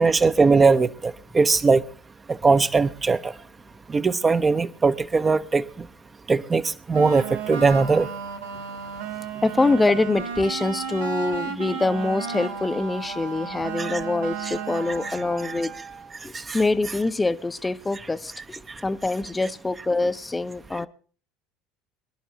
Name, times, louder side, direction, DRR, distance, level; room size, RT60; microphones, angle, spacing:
voice 1, 0.0-1.8 2.3-3.3 3.9-5.9 6.3-8.1 13.8-14.0 14.5-14.6 15.0-15.2 15.4-15.5 16.3-16.6 18.7-18.8, right 4 dB, 25° right, 0.8 m, -20 dB
sound 1, 6.9-15.8, right 6 dB, 80° right, 2.0 m, -34 dB
voice 2, 9.4-15.7 16.2-20.9, left 3 dB, 15° left, 0.7 m, -25 dB
Wind instrument woodwind instrument, 11.8-16.2, right 5 dB, 40° right, 1.5 m, -40 dB
24.5 x 11.0 x 2.8 m
figure-of-eight pair, 65°, 0 cm